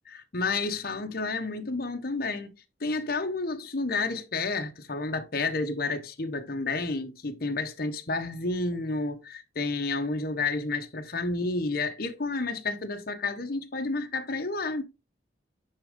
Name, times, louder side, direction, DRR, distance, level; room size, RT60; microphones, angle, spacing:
voice 1, 0.1-2.5 2.8-14.8, left 3 dB, 60° left, 1.0 m, -30 dB
9.7 x 3.6 x 3.6 m
head